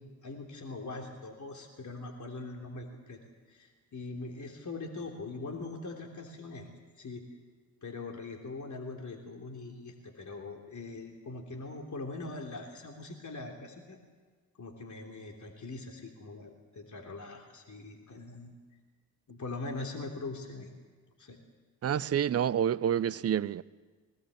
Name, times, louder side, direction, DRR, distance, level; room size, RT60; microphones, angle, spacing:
voice 1, 0.0-3.2 3.5-6.7 7.0-7.2 7.8-14.0 14.6-18.5 19.3-20.7 21.2-21.4, left 3 dB, 40° left, 3.3 m, -42 dB
voice 2, 21.8-23.6, right 9 dB, 35° right, 0.6 m, -28 dB
21.5 x 18.0 x 8.3 m
hypercardioid pair, 50°, 45 cm